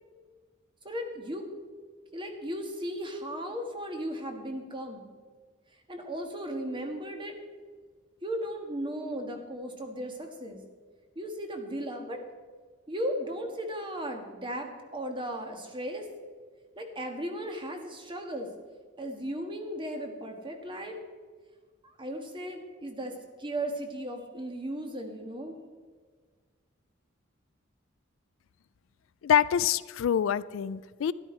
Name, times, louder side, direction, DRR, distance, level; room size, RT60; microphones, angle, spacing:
voice 1, 0.8-1.5 2.1-5.1 5.9-7.4 8.2-10.6 11.1-12.2 12.9-16.1 16.8-18.5 19.0-21.0 21.8-23.1 23.4-25.6, equal, 25° right, 4 dB, 1.5 m, -36 dB
voice 2, 29.2-31.1, left 9 dB, 70° left, 17 dB, 0.3 m, -26 dB
12.5 x 11.5 x 4.4 m, 1.5 s
head